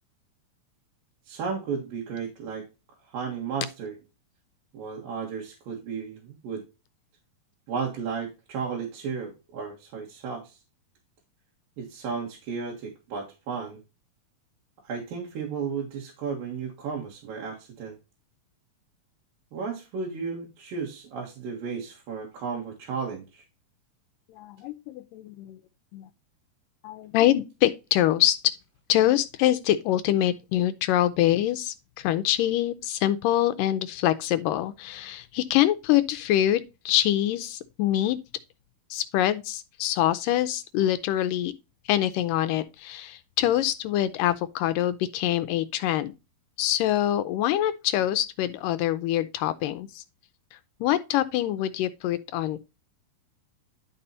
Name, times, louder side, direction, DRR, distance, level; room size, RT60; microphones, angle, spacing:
voice 1, 1.3-2.7 3.1-4.0 4.7-6.6 7.7-10.6 11.8-13.8 14.8-18.0 19.5-23.4, right 5 dB, 80° right, 3.3 m, -34 dB
voice 2, 24.4-25.6 25.9-26.1 26.8-28.5 28.9-38.2 38.9-41.5 41.9-46.1 46.6-50.0 50.8-52.7, left 13 dB, 80° left, 2.1 m, -25 dB
11.0 x 5.5 x 2.7 m
omnidirectional pair, 4.0 m